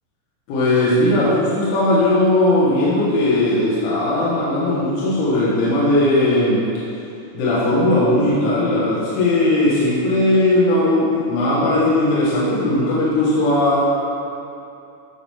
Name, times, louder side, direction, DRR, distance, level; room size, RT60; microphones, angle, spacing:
voice 1, 0.5-6.6 7.4-13.9, left 1 dB, 75° left, -9 dB, 3.8 m, -18 dB
13.5 x 6.0 x 3.6 m, 2.7 s
omnidirectional pair, 5.6 m